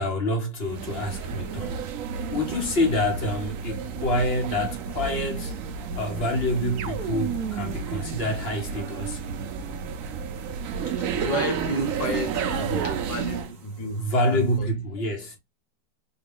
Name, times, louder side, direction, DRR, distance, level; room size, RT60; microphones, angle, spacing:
voice 1, 0.0-1.9 2.3-5.5 6.0-9.2 14.0-15.4, left 1 dB, 40° left, 1.0 m, -27 dB
sound 1, 0.6-13.6, right 6 dB, 90° right, 0.7 m, -31 dB
sound 2, 6.8-9.3 12.4-13.4, right 8 dB, 70° right, 1.0 m, -35 dB
voice 2, 10.9-14.7, equal, 70° left, 2.0 m, -31 dB
4.1 x 2.3 x 3.4 m
omnidirectional pair, 2.1 m